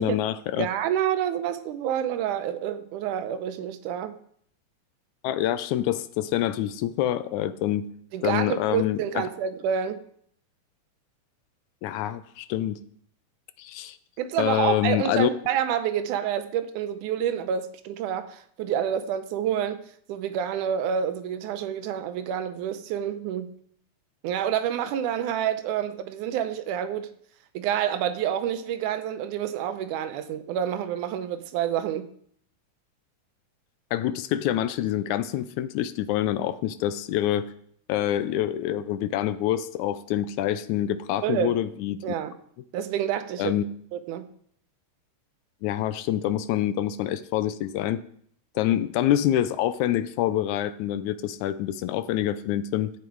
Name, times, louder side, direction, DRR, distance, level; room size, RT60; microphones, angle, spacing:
voice 1, 0.0-0.7 5.2-7.9 8.2-9.0 11.8-12.8 13.6-14.0 14.4-15.3 33.9-37.5 37.9-42.0 43.4-43.6 45.6-48.0 48.6-52.9, left 12 dB, 80° left, 13 dB, 1.9 m, -26 dB
voice 2, 0.6-4.1 8.1-10.0 14.2-19.8 20.1-23.5 24.2-27.1 27.5-32.1 41.2-41.5 42.0-42.4 42.7-43.6 43.9-44.3, right 9 dB, 80° right, 10 dB, 2.2 m, -28 dB
12.5 x 8.7 x 4.6 m, 0.64 s
omnidirectional pair, 3.6 m